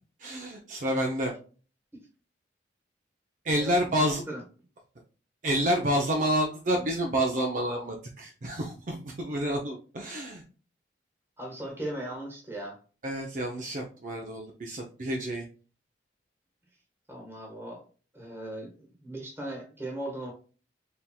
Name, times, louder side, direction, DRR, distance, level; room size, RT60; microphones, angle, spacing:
voice 1, 0.2-1.3 3.4-4.2 5.4-10.4 13.0-15.4, equal, 45° right, 1 dB, 0.6 m, -29 dB
voice 2, 11.4-12.8 17.1-17.8 18.1-20.3, right 1 dB, 15° right, 0 dB, 1.2 m, -38 dB
4.3 x 3.4 x 2.2 m, 0.37 s
head